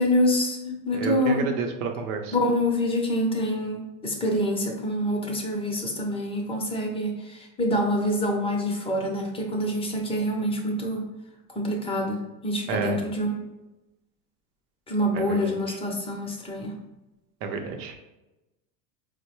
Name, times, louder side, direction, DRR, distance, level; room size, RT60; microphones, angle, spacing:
voice 1, 0.0-1.4 2.3-11.1 11.5-13.4 14.9-16.7, equal, 10° left, 0 dB, 0.6 m, -26 dB
voice 2, 0.9-2.3 12.7-13.0 15.1-15.6 17.4-17.9, right 5 dB, 70° right, 5 dB, 0.8 m, -30 dB
4.4 x 2.1 x 3.0 m, 1.0 s
hypercardioid pair, 105°, 49 cm